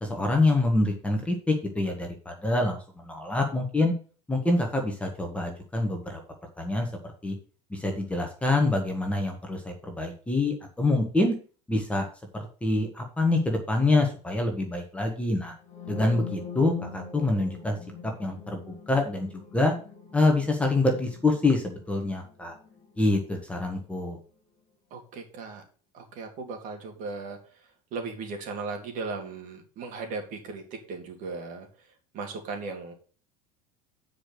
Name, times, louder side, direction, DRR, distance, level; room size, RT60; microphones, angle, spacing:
voice 1, 0.0-3.9 4.3-6.2 6.6-7.3 7.7-11.3 11.7-12.0 12.3-15.5 15.9-17.8 18.0-19.7 20.1-22.5 23.0-24.2, left 2 dB, 5° left, 2 dB, 1.5 m, -26 dB
sound 1, 15.6-23.5, left 5 dB, 35° left, 2.7 m, -43 dB
voice 2, 24.9-25.6 25.9-27.4 27.9-31.7 32.1-32.9, right 4 dB, 50° right, 3 dB, 2.7 m, -37 dB
8.6 x 5.2 x 6.2 m, 0.38 s
cardioid pair, 145°, 18 cm